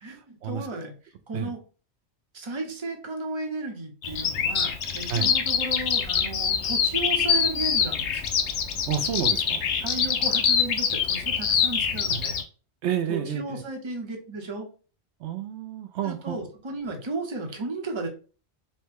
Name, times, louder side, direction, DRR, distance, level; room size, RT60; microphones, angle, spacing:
voice 1, 0.0-1.6 2.3-8.3 9.8-12.4 13.1-14.7 16.0-18.1, right 2 dB, 30° right, 2 dB, 0.8 m, -34 dB
Bird vocalization bird call bird song, 4.0-12.4, left 7 dB, 85° left, 1.0 m, -25 dB
voice 2, 8.9-9.7 12.1-12.2 12.8-13.6 15.2-16.4, right 9 dB, 80° right, 8 dB, 0.9 m, -30 dB
5.4 x 2.2 x 3.4 m, 0.36 s
omnidirectional pair, 1.1 m